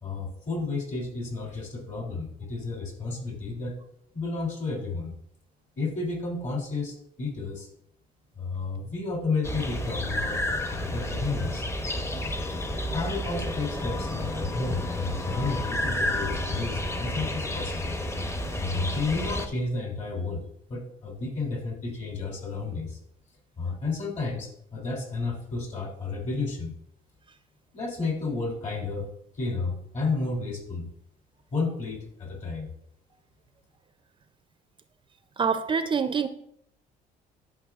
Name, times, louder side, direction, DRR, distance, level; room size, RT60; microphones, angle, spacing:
voice 1, 0.0-3.8 4.1-5.1 5.8-7.7 8.4-11.7 12.9-17.9 18.6-20.4 20.7-23.0 23.6-26.7 27.7-29.1 29.3-30.9 31.5-32.7, left 3 dB, 45° left, 0 dB, 2.8 m, -32 dB
sound 1, 9.4-19.5, left 1 dB, 15° left, 0.7 m, -30 dB
voice 2, 35.4-36.3, right 6 dB, 30° right, 10 dB, 0.4 m, -25 dB
11.0 x 5.6 x 2.4 m, 0.72 s
cardioid pair, 110°, 17 cm